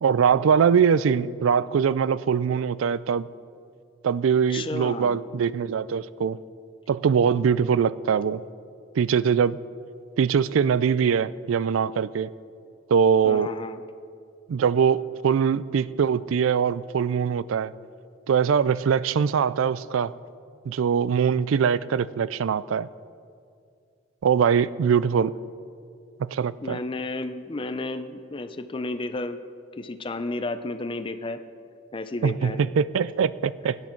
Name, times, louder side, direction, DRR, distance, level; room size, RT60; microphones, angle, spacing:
voice 1, 0.0-3.3 4.0-6.4 6.9-8.4 9.0-9.6 10.2-12.3 12.9-13.5 14.5-17.7 18.3-20.1 20.7-22.9 24.2-25.3 26.2-26.8 32.2-33.8, right 7 dB, 90° right, 18 dB, 0.4 m, -22 dB
voice 2, 4.5-5.2 13.2-13.8 26.6-29.4 29.8-31.4 31.9-32.6, left 2 dB, 25° left, 9 dB, 0.5 m, -32 dB
17.0 x 9.7 x 4.5 m, 2.3 s
head